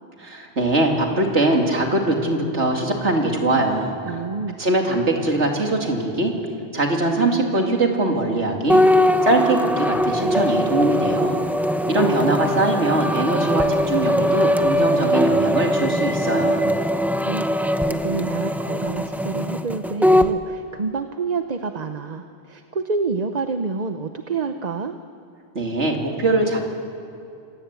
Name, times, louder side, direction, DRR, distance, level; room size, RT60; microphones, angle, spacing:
voice 1, 0.2-4.2 4.6-6.3 6.7-8.8 9.2-11.4 11.9-16.7 25.5-26.7, right 2 dB, 85° right, 2 dB, 3.0 m, -22 dB
voice 2, 4.1-4.6 17.2-24.9, right 4 dB, 40° right, 7 dB, 0.9 m, -28 dB
sound 1, 8.7-20.3, equal, ahead, 0.6 m, -21 dB
26.5 x 18.0 x 8.3 m, 2.8 s
omnidirectional pair, 1.1 m